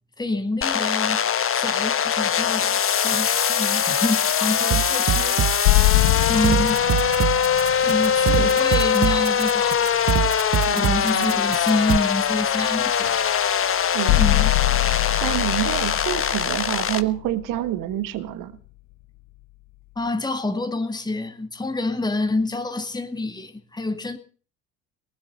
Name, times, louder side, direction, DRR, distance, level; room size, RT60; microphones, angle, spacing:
voice 1, 0.2-1.2 1.5-5.4 6.3-6.8 7.8-9.9 10.7-13.2 14.1-14.5 20.0-24.2, left 2 dB, 10° left, 2.1 m, -27 dB
sound 1, 0.6-17.0, left 8 dB, 35° left, 1.3 m, -22 dB
sound 2, 4.7-12.0, right 12 dB, 35° right, 0.7 m, -24 dB
sound 3, 5.6-9.4 13.0-13.2 14.1-17.9, left 20 dB, 70° left, 0.7 m, -24 dB
voice 2, 10.7-11.4 13.9-14.2 15.1-18.5, right 14 dB, 55° right, 1.5 m, -28 dB
19.5 x 7.2 x 9.8 m
hypercardioid pair, 55°, 38 cm